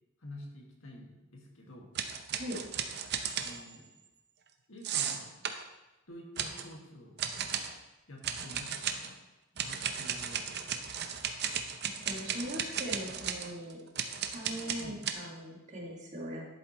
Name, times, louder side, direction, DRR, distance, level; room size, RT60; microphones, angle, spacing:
voice 1, 0.2-1.9 3.4-3.9 4.7-5.4 6.1-7.2 8.1-9.2 9.5-11.0 13.1-13.2 14.8-15.0, left 1 dB, 70° left, -1 dB, 2.0 m, -49 dB
sound 1, 2.0-3.8 4.8-5.6 6.4-6.7 7.2-7.7 8.2-9.1 9.6-15.1, right 8 dB, 50° right, 0.7 m, -35 dB
voice 2, 12.1-13.8 14.3-16.5, equal, 35° right, -3 dB, 1.9 m, -40 dB
11.0 x 8.0 x 3.1 m, 1.0 s
head